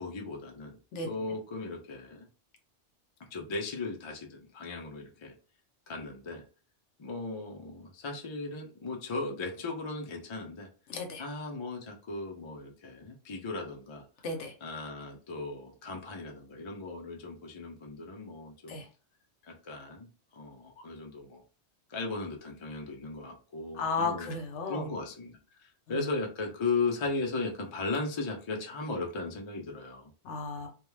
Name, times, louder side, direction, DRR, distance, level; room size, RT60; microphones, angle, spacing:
voice 1, 0.0-0.8 1.0-2.3 3.2-5.3 5.9-6.4 7.0-10.7 11.2-14.0 14.6-18.8 19.4-21.4 21.9-24.4 24.7-30.1, left 3 dB, 40° left, 0.4 m, -37 dB
voice 2, 10.9-11.2 14.2-14.5 18.7-18.9 23.7-24.9 25.9-26.1 30.2-30.7, left 4 dB, 80° left, 1.0 m, -34 dB
2.3 x 2.2 x 3.1 m
omnidirectional pair, 1.2 m